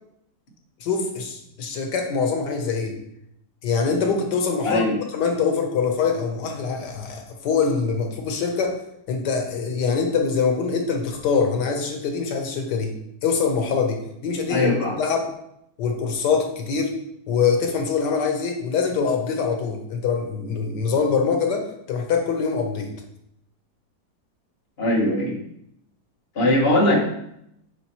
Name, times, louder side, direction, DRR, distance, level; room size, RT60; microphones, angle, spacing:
voice 1, 0.8-3.0 3.6-4.8 5.1-8.8 9.1-12.9 13.2-14.7 15.0-15.3 15.8-17.0 17.3-22.9, left 5 dB, 90° left, 3 dB, 1.6 m, -24 dB
voice 2, 4.6-5.0 14.5-15.0 24.8-25.3 26.3-27.0, left 1 dB, 35° left, -2 dB, 1.7 m, -20 dB
9.7 x 4.6 x 3.1 m, 0.77 s
omnidirectional pair, 1.8 m